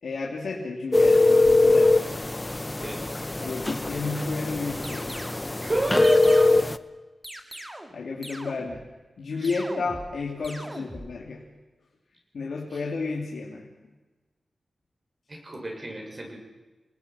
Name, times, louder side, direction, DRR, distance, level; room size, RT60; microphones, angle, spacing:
voice 1, 0.0-2.1 3.4-5.2 7.5-8.8 9.2-11.4 12.3-13.7, left 4 dB, 80° left, -2 dB, 3.1 m, -32 dB
sound 1, 0.9-6.8, left 2 dB, 20° left, 0.8 m, -22 dB
sound 2, 4.8-5.5 6.0-6.8 7.2-8.9 9.4-10.1 10.4-11.1, right 1 dB, 15° right, 2.4 m, -41 dB
voice 2, 5.6-6.5 9.4-9.6 12.7-12.8 15.3-16.4, right 2 dB, 35° right, 2 dB, 6.4 m, -30 dB
28.5 x 19.0 x 5.9 m, 1.2 s
wide cardioid pair, 115°, 0 cm